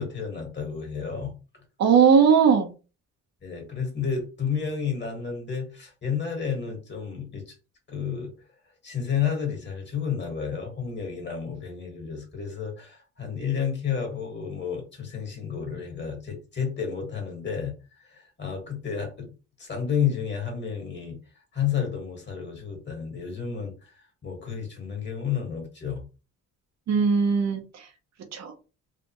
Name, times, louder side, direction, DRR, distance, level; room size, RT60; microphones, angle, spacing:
voice 1, 0.0-1.3 3.4-7.5 7.9-8.3 8.8-19.3 19.6-21.2 21.5-26.1, left 7 dB, 35° left, 3 dB, 1.8 m, -31 dB
voice 2, 1.8-2.7 26.9-27.9 28.3-28.5, right 6 dB, 60° right, 5 dB, 1.0 m, -19 dB
3.3 x 2.4 x 3.0 m, 0.32 s
cardioid pair, 90°, 30 cm